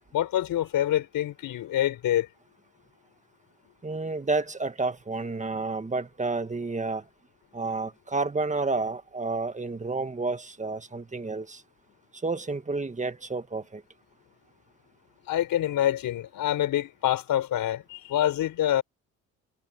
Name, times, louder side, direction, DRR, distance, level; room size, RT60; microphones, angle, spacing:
voice 1, 0.1-2.3 15.3-18.8, left 12 dB, 75° left, 3.8 m, -26 dB
voice 2, 3.8-7.0 7.5-11.6 12.2-13.8, right 3 dB, 20° right, 1.7 m, -30 dB
cardioid pair, 80°, 34 cm